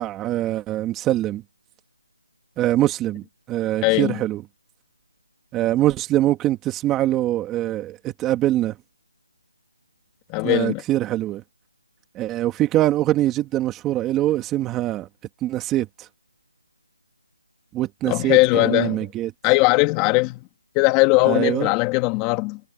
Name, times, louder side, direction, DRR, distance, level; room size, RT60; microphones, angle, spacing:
voice 1, 0.0-1.4 2.6-4.4 5.5-8.7 10.4-11.4 12.1-15.1 15.4-15.9 17.7-19.3 21.3-21.7, right 14 dB, 10° right, 2.3 m, -23 dB
voice 2, 3.8-4.2 10.3-10.8 18.0-19.1 19.4-20.4 20.7-22.6, left 24 dB, 10° left, 2.3 m, -19 dB
figure-of-eight pair, 170°, 0 cm